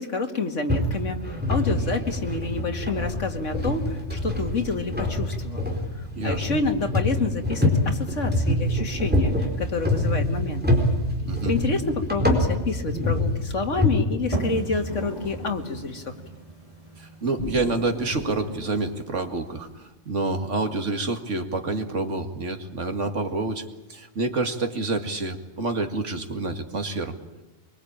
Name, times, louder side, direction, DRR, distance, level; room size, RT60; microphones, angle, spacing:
voice 1, 0.0-5.6 6.2-10.6 11.4-16.1, left 3 dB, 85° left, 5 dB, 2.5 m, -28 dB
sound 1, 0.7-13.9, left 1 dB, 10° right, 4.5 m, -25 dB
voice 2, 11.2-11.5 17.0-23.6 23.9-27.1, right 3 dB, 80° right, 6 dB, 2.4 m, -28 dB
sound 2, 14.3-19.8, right 2 dB, 30° right, 4.7 m, -36 dB
sound 3, 14.9-16.4 17.4-19.8, left 1 dB, 35° left, 5.9 m, -37 dB
24.0 x 23.5 x 8.9 m, 1.0 s
omnidirectional pair, 1.2 m